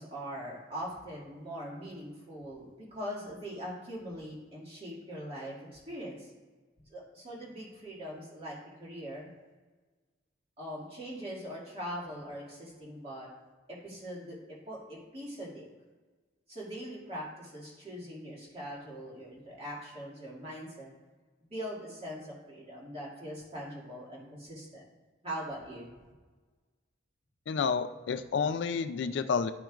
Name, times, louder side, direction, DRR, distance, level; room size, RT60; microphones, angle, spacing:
voice 1, 0.0-6.3 6.9-9.3 10.6-13.3 13.7-15.7 16.5-20.9 21.5-24.9 25.2-25.9, equal, 30° right, -5 dB, 2.1 m, -42 dB
voice 2, 27.5-29.5, left 5 dB, 60° left, 9 dB, 0.4 m, -30 dB
11.5 x 5.9 x 2.4 m, 1.3 s
head